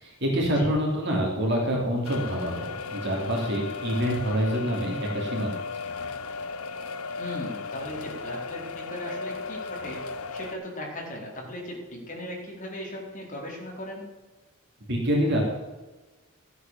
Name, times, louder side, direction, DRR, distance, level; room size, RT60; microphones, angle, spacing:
voice 1, 0.0-5.5 14.9-15.4, equal, 50° right, -2 dB, 3.4 m, -26 dB
sound 1, 2.0-10.5, left 4 dB, 80° left, 0.8 m, -35 dB
voice 2, 7.2-14.1, left 1 dB, 35° left, -2 dB, 3.9 m, -38 dB
14.0 x 8.4 x 7.1 m, 1.2 s
head